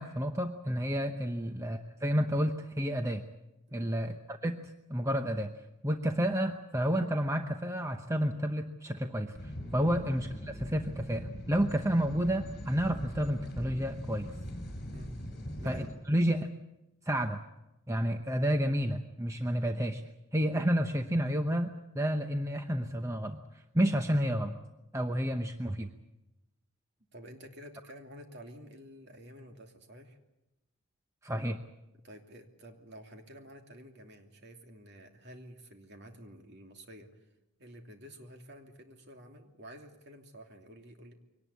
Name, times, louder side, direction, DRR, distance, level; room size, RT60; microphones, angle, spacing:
voice 1, 0.0-3.2 3.7-5.5 5.8-9.3 9.7-14.3 15.6-16.5 17.1-17.4 17.9-20.0 20.3-23.4 23.7-24.6 24.9-25.9 31.2-31.6, equal, 15° right, 6 dB, 0.8 m, -30 dB
sound 1, 9.3-15.9, equal, 45° left, 5.7 m, -41 dB
voice 2, 15.6-15.9 27.1-30.2 31.9-37.3 37.6-41.1, equal, 50° right, 3 dB, 2.9 m, -51 dB
23.5 x 18.5 x 8.3 m, 0.95 s
head